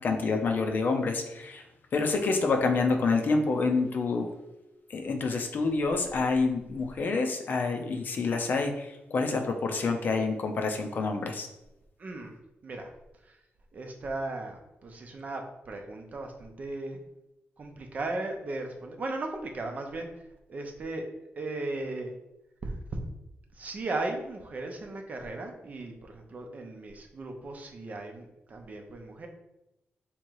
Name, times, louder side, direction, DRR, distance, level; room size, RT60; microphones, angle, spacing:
voice 1, 0.0-1.6 1.9-4.3 4.9-11.5, left 4 dB, 50° left, 4 dB, 0.5 m, -27 dB
voice 2, 12.0-12.9 13.2-13.4 13.7-17.0 17.6-20.1 20.5-21.0 21.3-22.1 22.6-23.0 23.5-29.3, right 2 dB, 40° right, 3 dB, 0.6 m, -37 dB
3.6 x 2.9 x 4.6 m, 0.94 s
wide cardioid pair, 150°, 4 cm